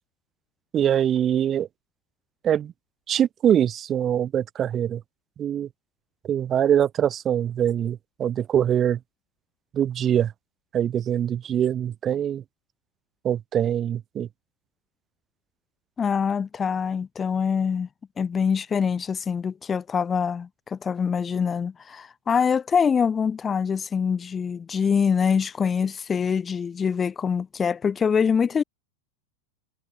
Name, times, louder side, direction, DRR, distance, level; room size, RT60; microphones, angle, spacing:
voice 1, 0.7-1.7 2.4-2.7 3.1-5.0 5.4-5.7 6.2-9.0 9.7-10.3 10.7-12.4 13.2-14.3, right 10 dB, 25° right, 6.4 m, -23 dB
voice 2, 16.0-17.9 18.2-28.6, left 6 dB, 20° left, 4.9 m, -24 dB
figure-of-eight pair, 90°, 0 cm